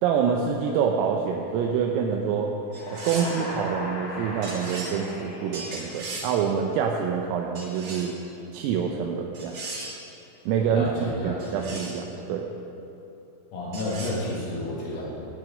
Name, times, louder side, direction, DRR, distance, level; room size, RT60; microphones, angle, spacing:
voice 1, 0.0-2.5 2.9-8.2 8.5-9.6 10.5-10.9 11.2-12.5, right 7 dB, 90° right, 1 dB, 3.5 m, -26 dB
sound 1, 2.7-6.5, left 1 dB, 45° left, 2.2 m, -38 dB
sound 2, 2.7-3.5 4.4-5.0 5.5-6.4 7.5-8.2 9.3-10.0 11.4-12.0 13.7-14.1, right 2 dB, 40° right, 2.6 m, -37 dB
voice 2, 10.7-11.6 13.5-15.0, left 2 dB, 85° left, -6 dB, 5.9 m, -31 dB
17.0 x 7.2 x 9.0 m, 2.9 s
omnidirectional pair, 5.9 m